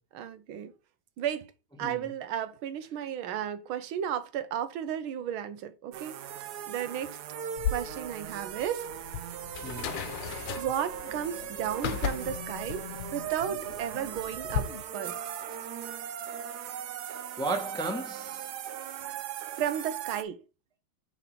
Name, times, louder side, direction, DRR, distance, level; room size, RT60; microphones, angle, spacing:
voice 1, 0.1-0.7 1.2-1.5 1.8-6.1 6.7-7.2 7.7-8.9 10.6-15.2 19.6-20.4, right 9 dB, 85° right, 1.7 m, -34 dB
sound 1, 5.9-20.2, right 10 dB, 70° right, 1.0 m, -39 dB
sound 2, 7.6-14.6, left 8 dB, 70° left, 1.5 m, -36 dB
sound 3, 9.5-14.8, left 7 dB, 90° left, 0.5 m, -47 dB
voice 2, 9.6-10.0 17.1-18.5, right 3 dB, 5° left, 0.4 m, -34 dB
6.0 x 4.0 x 5.8 m
omnidirectional pair, 2.2 m